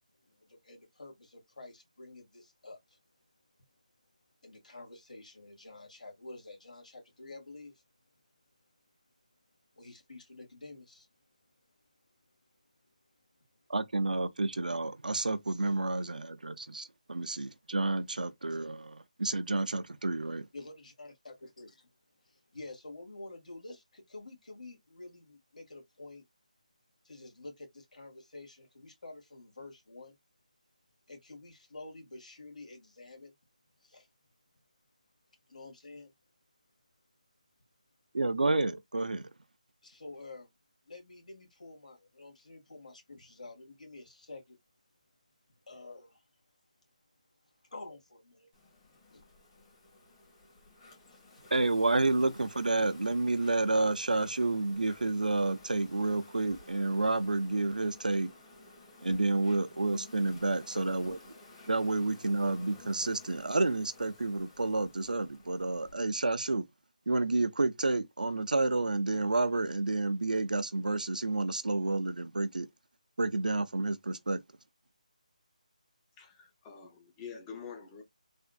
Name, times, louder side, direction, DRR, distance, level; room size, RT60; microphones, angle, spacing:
voice 1, 0.2-3.0 4.4-7.8 9.7-11.1 20.5-21.8 22.2-26.2 27.0-30.1 31.1-33.3 33.8-34.1 35.5-36.1 39.8-40.5 40.8-44.6 45.7-46.2 47.7-48.5 49.1-49.2 51.1-51.5 60.7-61.1 61.9-62.0, left 2 dB, 70° left, 1.8 m, -49 dB
voice 2, 13.7-20.5 38.1-39.3 51.5-58.3 59.0-61.2 61.7-66.6 67.1-72.7 73.2-74.4, right 2 dB, 85° right, 0.5 m, -30 dB
Insect, 48.5-65.9, left 2 dB, 35° left, 1.6 m, -54 dB
voice 3, 76.2-78.0, left 6 dB, 15° left, 0.6 m, -46 dB
3.5 x 2.5 x 2.3 m
figure-of-eight pair, 160°, 4 cm